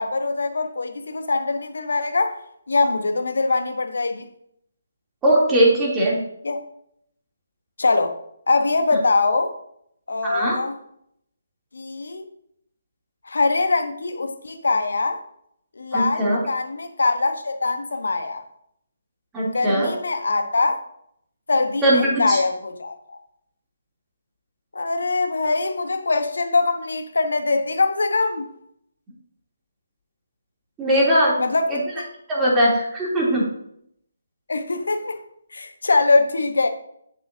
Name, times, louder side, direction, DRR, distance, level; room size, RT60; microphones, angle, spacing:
voice 1, 0.0-2.4 2.7-4.3 6.4-6.6 7.8-8.1 8.5-9.5 10.1-10.7 11.7-12.2 13.2-15.2 15.8-18.4 19.4-20.8 21.5-23.2 24.7-28.5 31.4-32.1 34.5-35.2 35.5-36.7, left 3 dB, 65° left, 1.1 m, -23 dB
voice 2, 5.2-6.2 10.2-10.6 15.9-16.4 19.3-19.9 21.8-22.4 30.8-31.3 31.7-31.8 32.3-33.4, right 1 dB, 10° right, 3.0 m, -19 dB
11.0 x 7.6 x 2.8 m
figure-of-eight pair, 145°, 0 cm